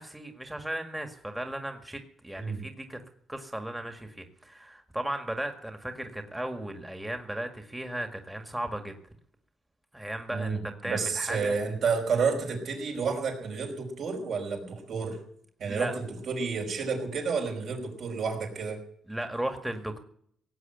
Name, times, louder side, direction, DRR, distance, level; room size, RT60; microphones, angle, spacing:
voice 1, 0.0-3.0 3.3-9.0 9.9-11.6 15.7-16.0 19.1-20.0, right 1 dB, 10° right, 6 dB, 1.9 m, -36 dB
voice 2, 10.3-15.2 15.6-18.8, right 5 dB, 65° right, 2 dB, 5.5 m, -30 dB
18.0 x 8.0 x 9.3 m, 0.64 s
cardioid pair, 90°, 0 cm